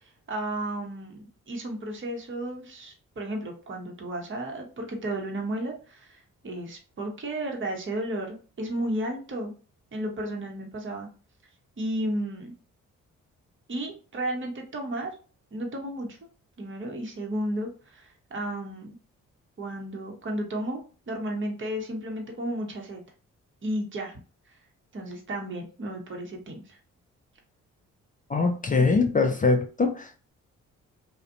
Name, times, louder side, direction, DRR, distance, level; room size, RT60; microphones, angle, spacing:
voice 1, 0.3-1.2 1.5-9.5 9.9-11.1 11.8-12.5 13.7-15.1 15.5-16.2 16.6-19.0 19.6-23.0 23.6-24.2 24.9-26.8, right 1 dB, 35° right, 0.8 m, -33 dB
voice 2, 28.3-30.3, left 4 dB, 25° left, 0.4 m, -23 dB
2.4 x 2.1 x 2.4 m
hypercardioid pair, 40°, 36 cm